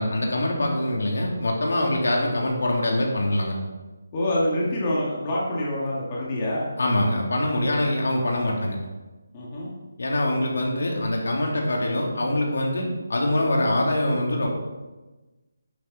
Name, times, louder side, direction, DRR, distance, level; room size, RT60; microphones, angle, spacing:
voice 1, 0.0-3.6 6.8-8.8 10.0-14.5, left 1 dB, 75° left, -1 dB, 3.1 m, -24 dB
voice 2, 4.1-6.7 9.3-9.7, left 1 dB, 20° left, -5 dB, 2.1 m, -26 dB
11.5 x 8.6 x 4.1 m, 1.2 s
hypercardioid pair, 175°, 0 cm